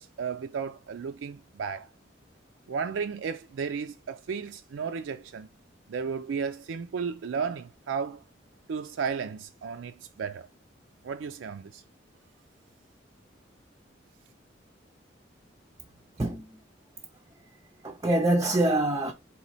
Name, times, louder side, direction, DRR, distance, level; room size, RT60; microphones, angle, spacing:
voice 1, 0.0-1.9 2.7-5.5 5.9-8.2 8.7-10.5 11.0-11.8, right 6 dB, 80° right, 0.4 m, -34 dB
voice 2, 16.2-16.6 17.8-19.1, right 1 dB, 20° right, 0.4 m, -25 dB
4.2 x 3.1 x 4.0 m
head